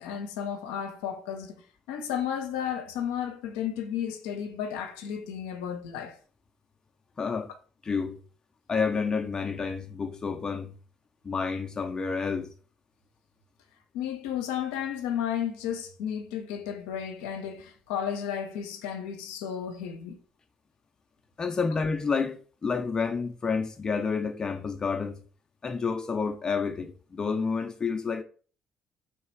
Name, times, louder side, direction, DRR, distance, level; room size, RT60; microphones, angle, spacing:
voice 1, 0.0-1.6 1.9-6.2 13.9-20.2, left 9 dB, 85° left, 0.6 m, -33 dB
voice 2, 7.2-7.5 7.8-8.2 8.7-10.7 11.2-12.5 21.4-25.2 25.6-28.2, left 5 dB, 35° left, 0.5 m, -29 dB
3.2 x 3.1 x 4.4 m
supercardioid pair, 60°, 2 cm